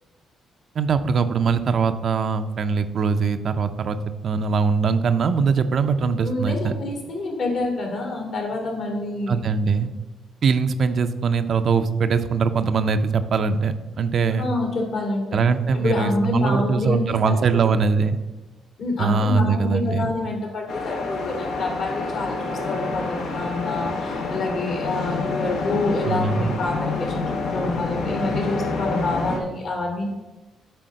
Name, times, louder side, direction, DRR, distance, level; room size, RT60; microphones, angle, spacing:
voice 1, 0.8-6.7 9.3-9.9 10.4-14.5 15.3-18.2 19.0-20.1 26.1-26.5, right 5 dB, 55° right, 9 dB, 0.5 m, -22 dB
voice 2, 6.2-9.4 14.4-15.4 15.7-17.7 18.8-30.1, left 2 dB, 65° left, 0 dB, 2.4 m, -27 dB
sound 1, 20.7-29.4, left 3 dB, 80° left, 1.3 m, -28 dB
7.8 x 3.8 x 6.3 m, 1.1 s
cardioid pair, 90°, 0 cm